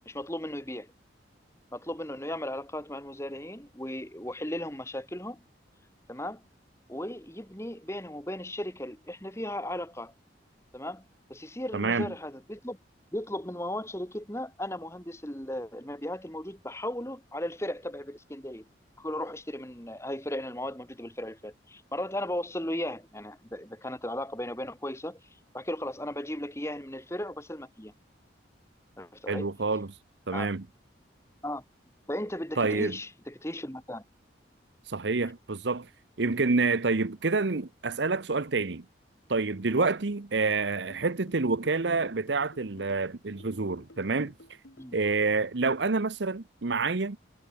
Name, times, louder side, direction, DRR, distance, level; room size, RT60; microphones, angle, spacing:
voice 1, 0.1-0.9 1.7-5.4 6.1-6.4 6.9-10.1 10.7-11.0 11.3-12.8 13.1-18.6 19.0-25.2 25.5-27.9 29.0-29.5 30.3-30.5 31.4-31.6 32.1-34.0 39.8-39.9 44.8-45.0, left 1 dB, 15° left, 2.8 m, -36 dB
voice 2, 11.7-12.1 29.3-29.9 30.3-30.6 32.6-33.0 34.9-35.9 36.2-38.8 39.3-44.3 44.9-47.2, right 3 dB, 70° right, 0.9 m, -28 dB
sound 1, 40.9-44.9, left 1 dB, 75° left, 7.7 m, -54 dB
head